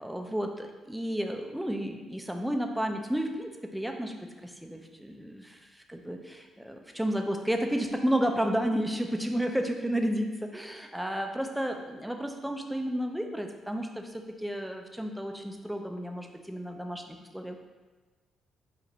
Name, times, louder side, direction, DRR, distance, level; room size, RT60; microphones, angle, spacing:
voice 1, 0.0-17.0 17.3-17.6, equal, 5° right, 4 dB, 0.4 m, -32 dB
4.9 x 2.5 x 3.1 m, 1.3 s
cardioid pair, 90°, 0 cm